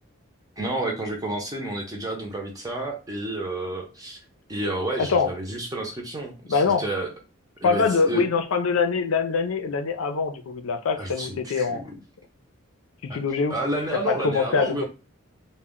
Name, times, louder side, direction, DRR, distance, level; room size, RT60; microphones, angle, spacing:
voice 1, 0.6-4.2 4.5-7.1 7.6-8.2 11.0-12.0 13.1-13.2 13.5-14.8, right 1 dB, 15° right, 0.6 m, -30 dB
voice 2, 5.0-5.3 6.5-6.8 7.6-11.8 13.0-13.6 13.9-14.8, left 5 dB, 85° left, 0.5 m, -24 dB
2.1 x 2.1 x 3.6 m
head